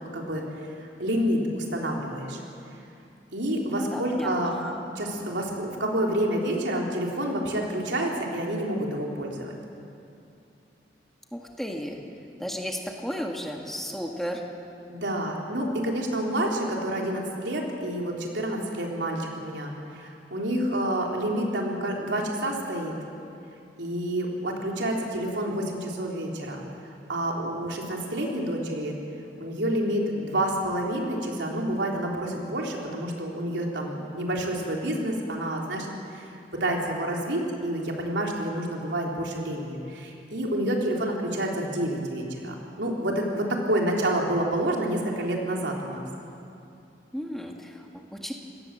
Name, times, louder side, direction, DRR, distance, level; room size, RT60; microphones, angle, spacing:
voice 1, 0.1-0.4 0.8-2.4 3.3-4.6 5.0-9.5 14.9-22.9 23.8-26.6 27.1-28.9 29.4-35.9 36.1-46.0, right 1 dB, 90° right, -1 dB, 3.8 m, -28 dB
voice 2, 3.7-4.8 11.3-12.0 12.4-14.4 47.1-48.3, equal, ahead, 1 dB, 1.7 m, -34 dB
26.5 x 18.0 x 7.7 m, 2.6 s
head